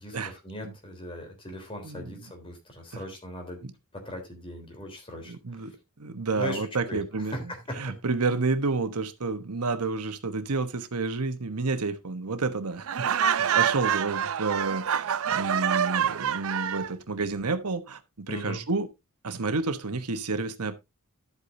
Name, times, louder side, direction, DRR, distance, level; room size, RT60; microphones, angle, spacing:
voice 1, 0.0-3.6 3.9-5.7 6.4-7.0 7.3-7.9 18.3-18.6, equal, 25° left, 3.6 m, -39 dB
voice 2, 1.8-2.2 2.9-3.0 3.6-3.7 5.3-5.7 6.0-7.4 7.7-13.1 13.4-18.9 19.2-20.7, right 3 dB, 90° right, 1.1 m, -30 dB
Laughter, 12.9-16.9, right 8 dB, 65° right, 0.5 m, -26 dB
12.5 x 8.3 x 2.7 m
head